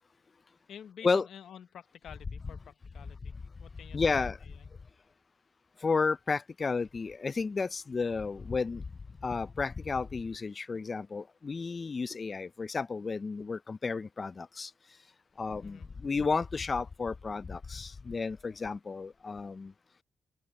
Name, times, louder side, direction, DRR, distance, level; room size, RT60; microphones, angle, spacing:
voice 1, 0.7-4.7 15.6-15.9, left 8 dB, 90° left, 0.9 m, -50 dB
voice 2, 3.9-4.4 5.8-8.8 9.2-14.7 15.4-19.7, left 4 dB, 40° left, 0.5 m, -32 dB
cardioid pair, 85°, 0 cm